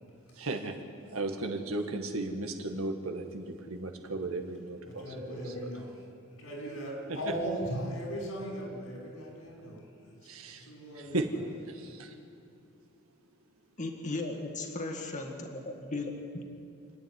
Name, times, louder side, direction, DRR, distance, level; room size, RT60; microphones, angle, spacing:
voice 1, 0.3-0.8 1.1-5.7 7.1-7.3 10.2-11.3 11.7-12.2, right 2 dB, 90° right, 4 dB, 1.9 m, -36 dB
voice 2, 4.9-5.9 6.4-9.8 10.5-11.2, equal, 85° left, -2 dB, 6.0 m, -37 dB
voice 3, 13.8-15.6 15.9-16.4, left 2 dB, 35° left, 3 dB, 1.8 m, -36 dB
28.0 x 9.5 x 9.8 m, 2.5 s
head